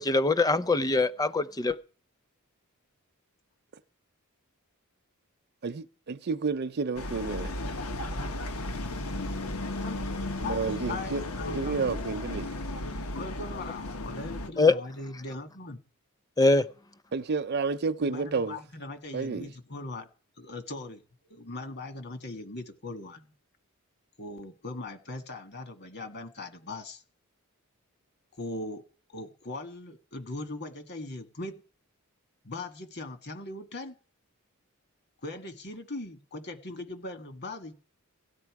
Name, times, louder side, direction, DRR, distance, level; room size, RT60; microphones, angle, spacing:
voice 1, 0.0-1.8 14.6-14.7 16.4-16.6, left 3 dB, 15° left, 0.7 m, -23 dB
voice 2, 5.6-7.6 10.4-12.5 17.1-18.6 19.1-19.5, right 4 dB, 50° right, 0.6 m, -31 dB
sound 1, 7.0-14.5, left 1 dB, 80° left, 1.2 m, -34 dB
voice 3, 10.4-11.8 13.1-15.8 18.1-20.1 20.4-21.0 21.3-23.3 24.2-27.0 28.4-28.8 29.1-31.6 32.4-33.9 35.2-37.7, left 2 dB, 50° left, 1.8 m, -39 dB
17.5 x 12.5 x 4.8 m
head